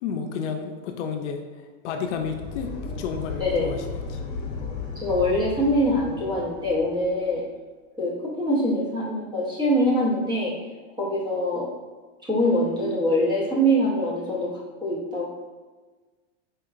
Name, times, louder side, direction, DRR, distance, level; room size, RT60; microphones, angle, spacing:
voice 1, 0.0-2.7 3.0-3.8 4.1-4.2, left 6 dB, 65° left, 4 dB, 0.5 m, -31 dB
sound 1, 2.0-7.2, left 4 dB, 45° left, 0.9 m, -35 dB
voice 2, 5.0-7.4 8.0-10.5 11.0-11.6 12.3-14.5 14.8-15.3, equal, 10° right, -5 dB, 0.7 m, -23 dB
4.5 x 2.8 x 2.4 m, 1.3 s
supercardioid pair, 150°, 38 cm